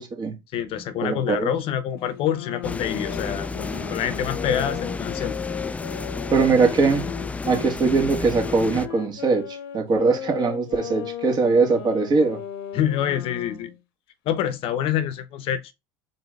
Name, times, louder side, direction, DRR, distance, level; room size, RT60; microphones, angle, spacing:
voice 1, 0.0-0.3 1.0-1.5 6.3-7.1 7.5-12.4, right 4 dB, 40° right, 1.8 m, -21 dB
voice 2, 0.5-5.4 12.7-13.7 14.3-15.7, left 9 dB, 55° left, 0.8 m, -26 dB
sound 1, 2.0-7.7 8.4-13.8, left 9 dB, 85° left, 0.9 m, -36 dB
sound 2, 2.6-8.9, left 4 dB, 10° left, 0.3 m, -31 dB
4.0 x 3.8 x 3.3 m
supercardioid pair, 105°, 11 cm